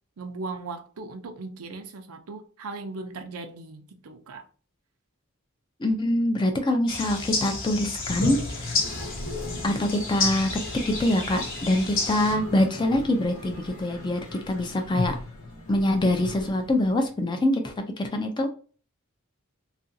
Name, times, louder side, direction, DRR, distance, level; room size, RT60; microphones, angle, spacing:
voice 1, 0.2-4.5, right 3 dB, 85° right, 0.5 m, -38 dB
voice 2, 5.8-8.8 9.6-10.5 10.9-14.2 14.5-15.2 15.7-18.5, left 1 dB, 20° left, 0.4 m, -24 dB
sound 1, 6.9-12.4, left 3 dB, 40° left, 0.9 m, -31 dB
Toilet flush, 8.0-17.1, left 1 dB, 80° left, 0.8 m, -37 dB
2.9 x 2.5 x 2.6 m
head